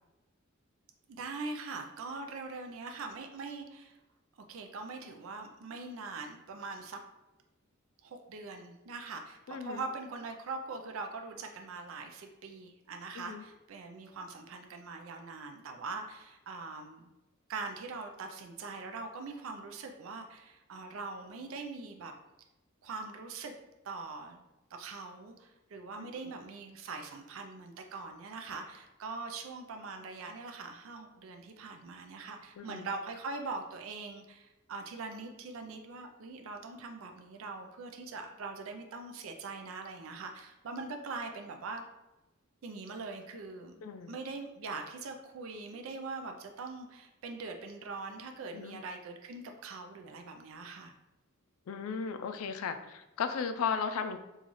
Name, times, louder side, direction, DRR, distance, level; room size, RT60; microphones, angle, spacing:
voice 1, 1.1-4.0 4.5-7.0 8.0-17.1 17.5-22.1 22.8-23.6 23.8-24.4 24.7-41.8 42.6-50.9, right 3 dB, 70° right, 4 dB, 0.4 m, -42 dB
voice 2, 9.5-9.8 13.2-13.4 26.0-26.1 32.6-33.0 43.8-44.2 48.5-48.8 51.7-54.2, left 6 dB, 80° left, 8 dB, 0.3 m, -36 dB
3.0 x 2.4 x 3.9 m, 1.0 s
head